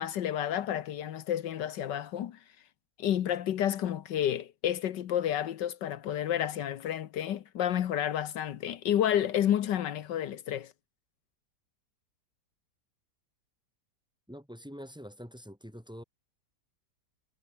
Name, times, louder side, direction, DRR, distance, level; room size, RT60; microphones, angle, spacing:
voice 1, 0.0-2.4 3.0-10.7, left 10 dB, 80° left, 1.6 m, -30 dB
voice 2, 14.3-16.0, equal, ahead, 7.6 m, -45 dB
omnidirectional pair, 1.9 m